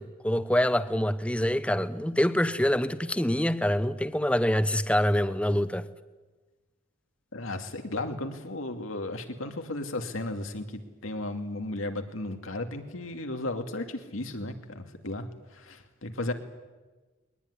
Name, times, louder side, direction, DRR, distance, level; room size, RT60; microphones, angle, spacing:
voice 1, 0.0-5.8, left 1 dB, 5° left, 0.8 m, -25 dB
voice 2, 7.3-16.3, left 2 dB, 90° left, 2.5 m, -35 dB
22.0 x 19.5 x 9.9 m
head